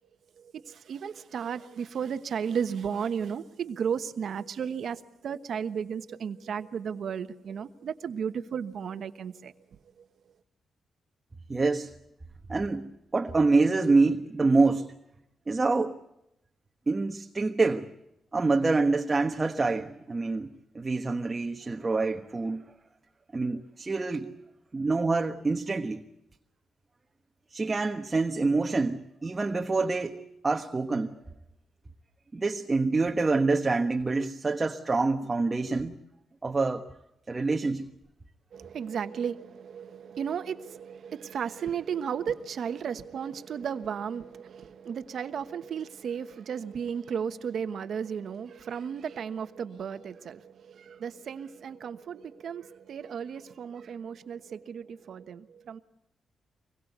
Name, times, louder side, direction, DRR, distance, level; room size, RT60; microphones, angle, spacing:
voice 1, 0.4-9.5 38.5-55.8, right 7 dB, 60° right, 1.2 m, -34 dB
voice 2, 11.5-11.9 12.5-14.9 15.5-16.0 16.9-17.9 18.3-20.5 20.7-22.6 23.3-24.3 24.7-26.0 27.5-31.2 32.3-36.0 36.4-36.9 37.3-37.9, right 3 dB, 25° right, 1.2 m, -26 dB
25.0 x 21.5 x 8.1 m
cardioid pair, 120°, 0 cm